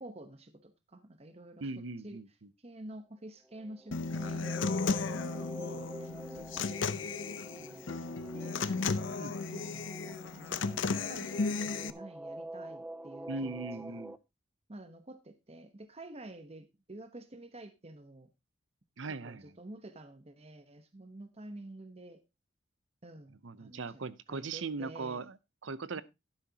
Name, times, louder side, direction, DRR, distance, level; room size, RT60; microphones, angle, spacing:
voice 1, 0.0-2.2 2.6-5.2 5.7-7.1 7.5-7.9 8.3-8.6 9.5-14.0 14.7-18.3 19.2-22.2 23.0-25.3, right 1 dB, 30° right, 1.0 m, -50 dB
voice 2, 1.6-2.5 9.2-9.6 13.3-14.1 19.0-19.6 23.4-26.0, right 3 dB, 80° right, 0.7 m, -40 dB
sound 1, 3.5-14.2, right 1 dB, 5° right, 0.5 m, -46 dB
Human voice / Acoustic guitar, 3.9-11.9, left 4 dB, 75° left, 0.7 m, -34 dB
11.5 x 10.0 x 2.8 m
head